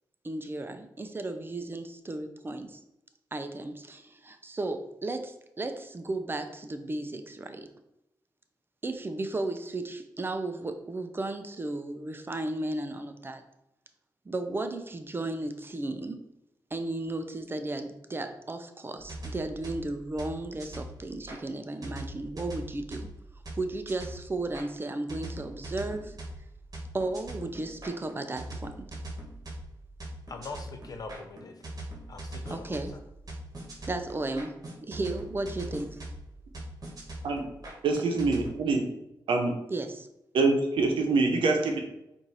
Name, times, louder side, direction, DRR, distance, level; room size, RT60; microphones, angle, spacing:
voice 1, 0.2-2.8 3.3-7.7 8.8-13.4 14.3-16.2 16.7-23.1 23.6-26.2 26.9-28.9 32.5-32.9 33.9-34.5 34.9-35.9 39.7-40.1, right 2 dB, 25° right, 8 dB, 0.5 m, -34 dB
sound 1, 19.0-21.4 21.8-24.7 25.1-38.5, right 1 dB, 45° right, 1.3 m, -42 dB
voice 2, 30.3-31.5 32.1-33.0, left 3 dB, 50° left, 6 dB, 0.6 m, -42 dB
voice 3, 37.8-38.8 39.3-39.5 40.3-41.8, right 3 dB, 85° right, 3 dB, 0.7 m, -25 dB
4.4 x 2.6 x 4.1 m, 0.87 s
cardioid pair, 70°, 8 cm